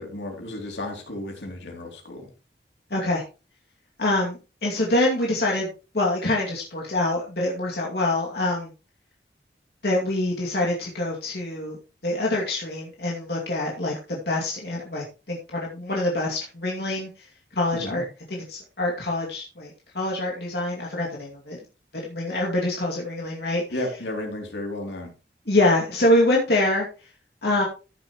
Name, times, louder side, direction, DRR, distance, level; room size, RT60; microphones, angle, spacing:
voice 1, 0.0-2.3 17.7-18.0 23.7-25.1, left 1 dB, 90° left, 2 dB, 3.1 m, -33 dB
voice 2, 2.9-3.2 4.0-5.7 5.9-8.7 9.8-11.8 12.0-17.1 17.6-21.6 22.0-23.6 25.5-26.9 27.4-27.6, left 1 dB, 70° left, -3 dB, 2.4 m, -25 dB
14.5 x 7.2 x 3.1 m, 0.33 s
head